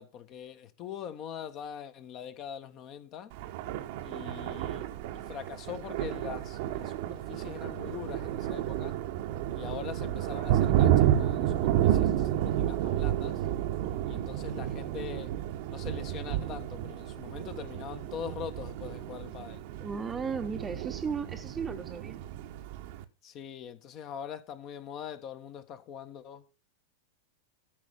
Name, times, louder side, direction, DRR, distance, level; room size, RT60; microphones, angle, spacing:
voice 1, 0.0-3.3 4.0-9.0 9.5-13.5 14.1-15.3 15.7-19.6 23.2-26.4, left 8 dB, 35° left, 1.5 m, -43 dB
Thunder, 3.3-23.0, right 11 dB, 50° right, 1.1 m, -31 dB
voice 2, 19.7-22.2, right 5 dB, 20° right, 1.0 m, -35 dB
13.5 x 5.3 x 7.3 m
figure-of-eight pair, 90°, 0 cm